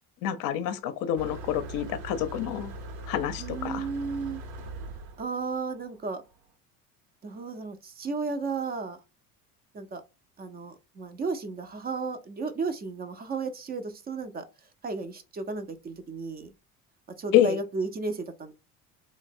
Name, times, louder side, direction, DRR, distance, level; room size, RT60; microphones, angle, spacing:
voice 1, 0.2-2.7 3.1-3.9 17.3-17.6, left 11 dB, 50° left, 0.6 m, -27 dB
Motor vehicle (road), 1.2-6.3, right 1 dB, 65° right, 0.8 m, -41 dB
voice 2, 3.4-4.4 5.2-6.2 7.2-9.0 9.7-10.0 10.4-14.4 14.8-16.5 17.2-18.5, right 4 dB, 25° right, 0.4 m, -33 dB
3.2 x 2.0 x 2.5 m
hypercardioid pair, 70°, 44 cm